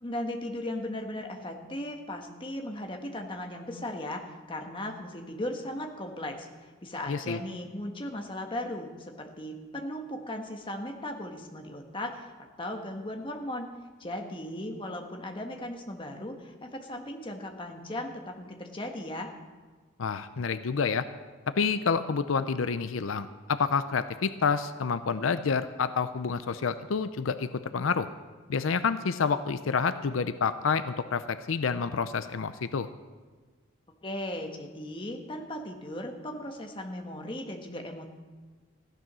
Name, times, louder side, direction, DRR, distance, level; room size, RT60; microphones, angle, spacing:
voice 1, 0.0-4.2 4.5-6.5 6.8-12.3 12.6-13.7 14.0-19.3 34.0-38.0, left 1 dB, 25° left, 3 dB, 1.4 m, -37 dB
voice 2, 7.1-7.4 20.0-21.1 21.6-28.1 28.5-32.9, left 5 dB, 85° left, 12 dB, 0.6 m, -28 dB
15.0 x 10.5 x 6.2 m, 1.4 s
head